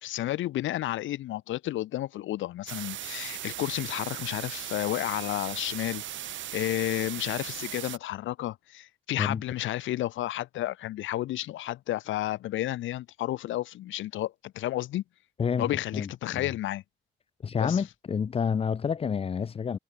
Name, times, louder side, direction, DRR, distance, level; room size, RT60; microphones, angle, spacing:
voice 1, 0.0-15.0 15.6-16.8 17.6-17.8, left 14 dB, 75° left, 0.8 m, -32 dB
sound 1, 2.7-8.0, right 12 dB, 75° right, 1.9 m, -38 dB
voice 2, 15.4-16.1 16.4-16.5 17.4-19.8, left 6 dB, 30° left, 0.5 m, -29 dB
cardioid pair, 90°, 20 cm